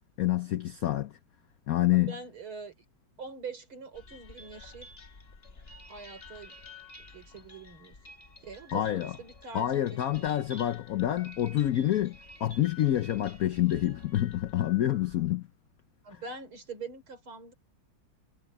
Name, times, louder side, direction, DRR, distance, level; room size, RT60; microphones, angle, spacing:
voice 1, 0.2-1.1 1.7-2.1 8.7-9.1 9.5-15.5, left 13 dB, 75° left, 0.8 m, -27 dB
voice 2, 1.9-2.8 3.2-4.9 5.9-6.6 7.0-8.0 8.4-10.3 16.0-17.5, right 4 dB, 80° right, 5.5 m, -44 dB
sound 1, 3.9-15.2, left 3 dB, 30° left, 1.7 m, -51 dB
omnidirectional pair, 2.3 m